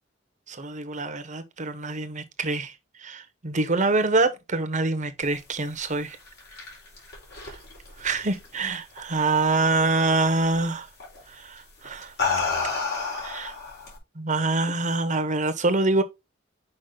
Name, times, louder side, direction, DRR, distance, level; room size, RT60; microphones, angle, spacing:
voice 1, 0.5-2.7 3.0-6.2 7.4-7.6 8.0-10.9 11.3-12.1 13.2-13.5 14.2-16.0, right 3 dB, 40° right, 1.2 m, -25 dB
sound 1, 6.1-9.0 9.3-9.8 11.0-11.2 11.8-14.0, left 4 dB, 60° left, 4.2 m, -30 dB
6.6 x 5.3 x 4.0 m
head